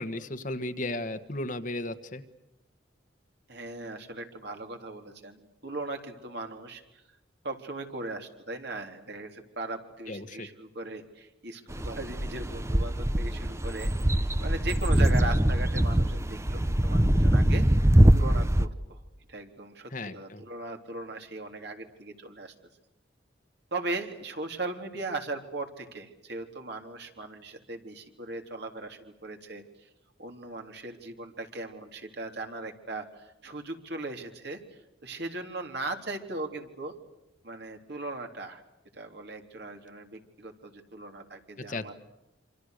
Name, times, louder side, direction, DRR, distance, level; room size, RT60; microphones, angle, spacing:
voice 1, 0.0-2.2 10.1-10.5 19.9-20.4 41.6-41.9, left 2 dB, 45° left, 9 dB, 1.6 m, -35 dB
voice 2, 3.5-6.8 7.4-17.7 18.1-19.0 19.3-22.5 23.7-29.9 30.2-34.6 35.0-36.9 37.4-38.6 38.9-41.9, right 2 dB, 60° right, 4 dB, 3.6 m, -38 dB
sound 1, 11.7-18.7, right 1 dB, 15° right, 0.9 m, -23 dB
27.5 x 27.0 x 6.7 m, 0.91 s
head